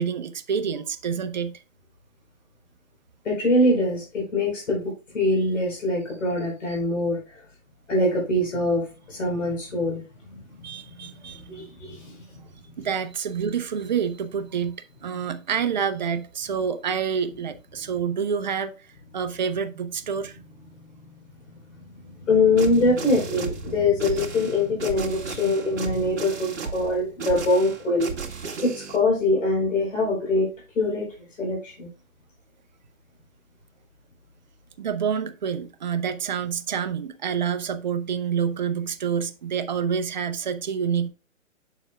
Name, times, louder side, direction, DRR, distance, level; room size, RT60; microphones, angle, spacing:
voice 1, 0.0-1.6 6.7-6.8 10.6-11.4 12.8-14.8 15.0-18.9 19.1-20.4 34.8-41.1, right 7 dB, 35° right, 0.6 m, -27 dB
voice 2, 3.2-7.2 7.9-8.8 9.1-10.0 10.2-10.7 11.0-11.1 11.4-12.2 21.7-21.8 22.3-28.1 28.6-30.5 30.8-31.1 31.4-31.9, left 2 dB, 65° left, 4.1 m, -23 dB
sound 1, 22.6-29.0, right 5 dB, 55° right, 2.0 m, -35 dB
7.5 x 7.0 x 2.2 m
hypercardioid pair, 145°, 40 cm